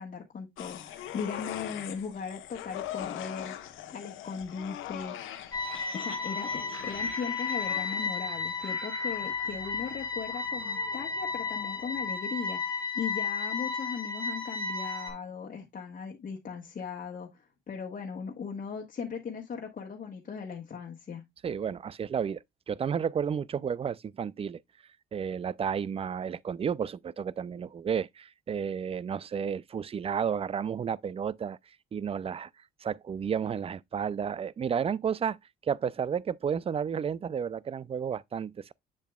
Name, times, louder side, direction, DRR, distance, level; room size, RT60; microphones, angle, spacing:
voice 1, 0.0-3.5 3.9-5.1 5.9-21.2, left 6 dB, 45° left, 1.5 m, -38 dB
sound 1, 0.6-12.1 12.4-12.5, left 12 dB, 90° left, 1.0 m, -43 dB
sound 2, 5.5-15.1, left 4 dB, 20° left, 2.2 m, -33 dB
voice 2, 21.4-24.6 25.1-31.6 31.9-32.5 32.8-35.4 35.6-38.7, right 7 dB, 30° right, 0.4 m, -32 dB
7.7 x 7.1 x 2.3 m
cardioid pair, 90°, 20 cm